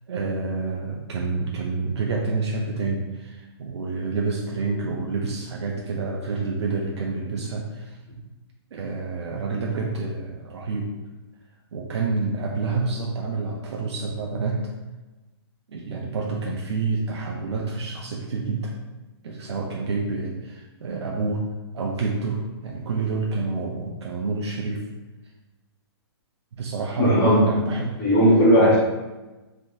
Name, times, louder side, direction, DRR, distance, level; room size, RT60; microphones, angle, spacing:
voice 1, 0.1-8.0 8.7-10.9 11.7-14.7 15.7-18.7 19.2-21.5 21.7-24.9 26.5-28.0 28.6-28.8, right 4 dB, 80° right, -1 dB, 0.4 m, -28 dB
voice 2, 27.0-27.5 28.0-28.8, equal, 15° left, -14 dB, 0.7 m, -16 dB
3.4 x 2.6 x 2.2 m, 1.1 s
hypercardioid pair, 180°, 14 cm